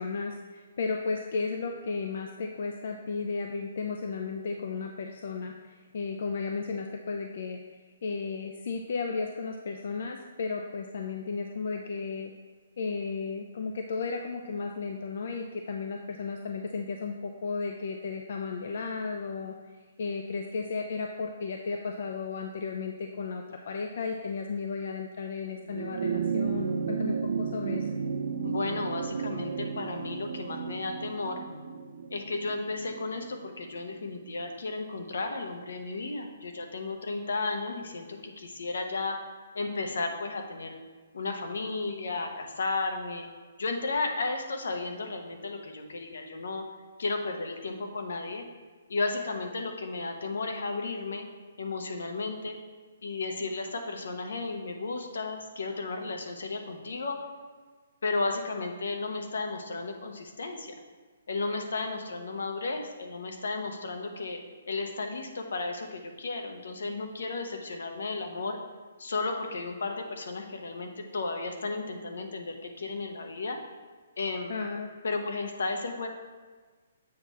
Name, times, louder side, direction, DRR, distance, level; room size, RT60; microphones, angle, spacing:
voice 1, 0.0-7.6 8.0-12.3 12.8-19.6 20.0-27.9 74.5-74.9, left 4 dB, 60° left, 4 dB, 0.4 m, -34 dB
sound 1, 25.6-34.3 35.5-35.6, right 6 dB, 85° right, 0.6 m, -33 dB
voice 2, 28.4-31.4 32.1-39.2 39.5-40.8 41.1-43.3 43.6-46.6 47.0-48.5 48.9-51.3 51.6-52.6 53.0-57.2 58.0-60.7 61.3-64.4 64.7-68.6 69.0-73.6 74.2-74.5 75.0-76.1, left 3 dB, 80° left, 4 dB, 0.9 m, -33 dB
7.5 x 3.1 x 5.5 m, 1.4 s
hypercardioid pair, 165°, 0 cm